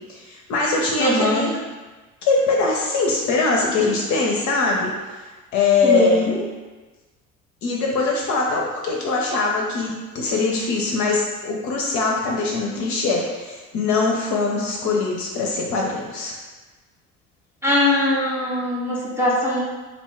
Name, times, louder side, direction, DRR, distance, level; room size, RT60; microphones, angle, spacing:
voice 1, 0.1-1.5 2.2-4.9 5.5-6.3 7.6-16.3, left 3 dB, 45° left, -2 dB, 0.5 m, -22 dB
voice 2, 1.0-1.5 5.8-6.5 17.6-19.6, left 1 dB, 5° right, -5 dB, 0.6 m, -21 dB
2.6 x 2.1 x 3.2 m, 1.3 s
figure-of-eight pair, 55°, 42 cm